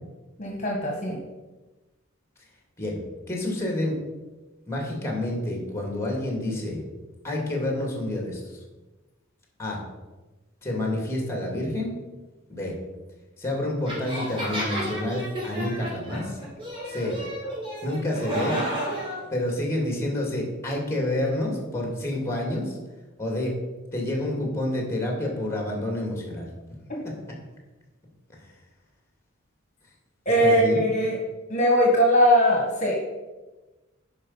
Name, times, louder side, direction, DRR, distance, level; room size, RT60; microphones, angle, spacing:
voice 1, 0.4-1.2 30.2-31.2 31.5-33.0, equal, 40° left, -1 dB, 1.6 m, -20 dB
voice 2, 3.3-4.0 4.7-6.8 7.2-8.6 9.6-9.8 10.6-12.0 12.5-12.8 13.4-16.4 16.9-17.1 17.8-18.6 19.3-22.8 23.2-23.5 23.9-26.5 27.0-27.1 30.4-30.8, left 1 dB, 15° left, 0 dB, 2.3 m, -28 dB
sound 1, 13.9-19.2, right 1 dB, 25° right, 3.4 m, -32 dB
10.5 x 4.9 x 5.6 m, 1.2 s
head